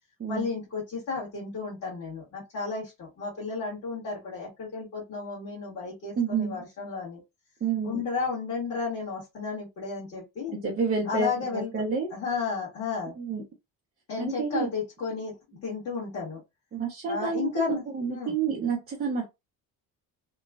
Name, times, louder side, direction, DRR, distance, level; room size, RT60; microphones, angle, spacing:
voice 1, 0.3-7.2 7.8-10.5 11.1-11.7 12.1-13.1 14.1-15.3 15.6-16.4 17.1-17.8 18.1-18.3, left 4 dB, 45° left, 1.5 m, -33 dB
voice 2, 6.2-6.6 7.6-8.0 10.5-12.1 13.2-13.4 14.2-14.7 16.7-19.2, right 5 dB, 25° right, 0.7 m, -29 dB
3.0 x 2.2 x 2.3 m
cardioid pair, 180°, 35 cm